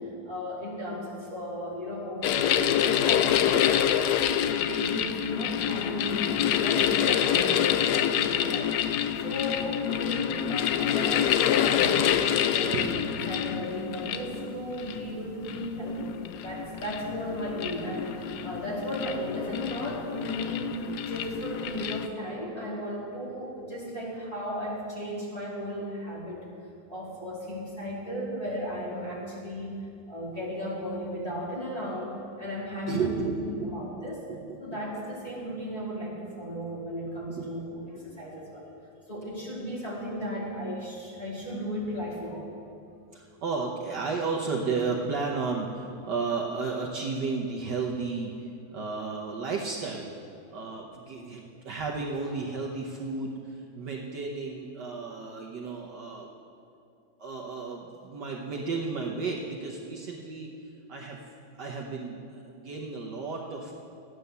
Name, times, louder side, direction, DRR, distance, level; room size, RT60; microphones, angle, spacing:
voice 1, 0.0-4.1 4.5-12.1 12.4-16.1 16.4-26.5 26.9-29.8 30.1-34.2 34.6-38.7 39.1-42.5, equal, 15° left, -7 dB, 3.0 m, -35 dB
sound 1, 2.2-22.1, left 10 dB, 85° left, 0.9 m, -27 dB
voice 2, 12.7-13.8 18.4-18.5 32.9-33.9 34.3-34.8 37.3-37.5 43.1-50.1 50.5-56.3 57.2-60.5 60.9-61.2 61.6-63.7, right 4 dB, 60° right, -1 dB, 1.4 m, -33 dB
13.0 x 9.7 x 6.8 m, 2.6 s
omnidirectional pair, 2.3 m